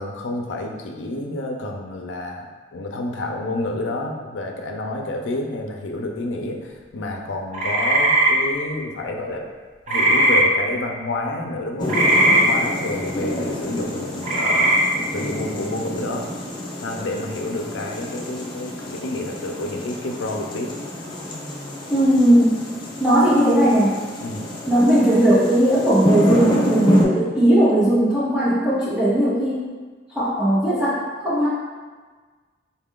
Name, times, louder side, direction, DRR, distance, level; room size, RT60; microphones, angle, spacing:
voice 1, 0.0-2.5 2.7-9.5 9.9-12.0 12.2-14.7 15.1-16.4 16.8-20.7 24.2-24.5, left 2 dB, 90° left, 2 dB, 0.5 m, -29 dB
sound 1, 7.5-8.3 9.9-10.4 11.9-12.4 14.2-14.8, right 1 dB, 40° right, 0.6 m, -17 dB
sound 2, 11.8-27.0, left 1 dB, 25° left, 0.5 m, -28 dB
voice 2, 21.9-22.7 23.0-24.0 24.7-29.7 30.1-31.5, right 1 dB, 5° right, -12 dB, 0.7 m, -18 dB
4.0 x 2.4 x 3.6 m, 1.4 s
head